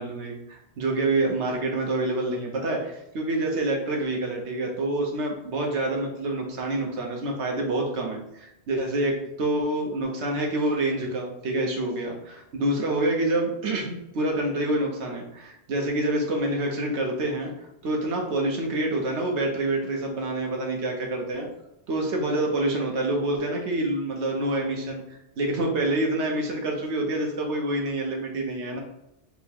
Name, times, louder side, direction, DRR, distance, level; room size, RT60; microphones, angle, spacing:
voice 1, 0.0-17.5 17.8-21.5 21.9-25.0 25.4-28.8, right 1 dB, 85° right, 0 dB, 1.1 m, -27 dB
4.2 x 2.2 x 4.3 m, 0.85 s
omnidirectional pair, 1.1 m